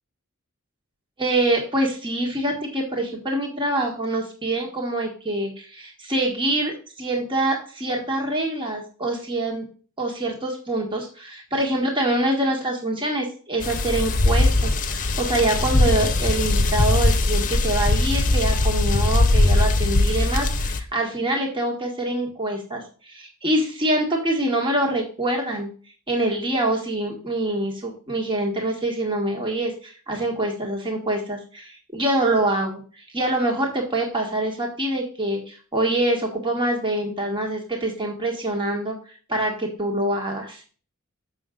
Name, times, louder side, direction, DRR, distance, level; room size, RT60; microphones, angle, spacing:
voice 1, 1.2-9.6 10.0-25.7 26.1-32.8 33.1-39.0 39.3-40.6, right 1 dB, 25° right, 1 dB, 1.6 m, -25 dB
sound 1, 13.6-20.8, left 2 dB, 40° left, 0.8 m, -20 dB
7.0 x 6.2 x 3.7 m, 0.39 s
head